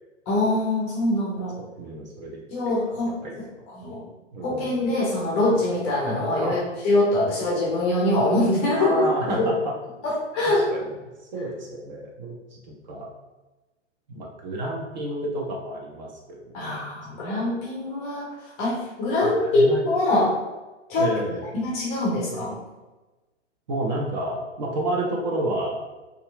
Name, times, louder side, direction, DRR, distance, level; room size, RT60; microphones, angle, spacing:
voice 1, 0.3-1.6 2.5-3.2 3.7-4.0 4.4-6.6 6.8-9.0 9.3-9.5 10.0-10.7 16.5-18.3 18.6-20.4 20.9-21.2 21.5-22.6, left 2 dB, 20° left, -4 dB, 0.5 m, -23 dB
voice 2, 1.6-2.8 3.2-3.3 4.3-4.8 6.4-6.6 8.7-9.7 10.6-10.9 11.2-13.1 14.1-16.8 19.2-19.9 21.0-21.6 23.7-25.8, right 1 dB, 40° right, -2 dB, 0.4 m, -30 dB
2.6 x 2.3 x 2.3 m, 1.1 s
figure-of-eight pair, 115°, 37 cm